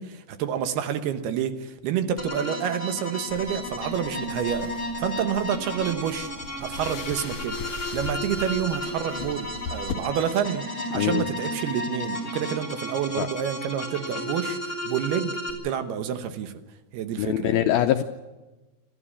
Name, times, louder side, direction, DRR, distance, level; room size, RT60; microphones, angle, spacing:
voice 1, 0.0-4.7 5.0-6.3 6.6-7.6 7.9-10.6 10.9-16.5 16.9-17.7, right 9 dB, 70° right, 9 dB, 2.9 m, -28 dB
sound 1, 2.2-15.5, equal, 10° left, 4.2 m, -33 dB
sound 2, 3.3-9.9, left 6 dB, 50° left, 2.8 m, -39 dB
voice 2, 10.9-11.3 13.2-13.3 17.2-18.0, left 12 dB, 75° left, 7 dB, 2.3 m, -23 dB
28.0 x 13.0 x 8.5 m, 1.1 s
omnidirectional pair, 5.0 m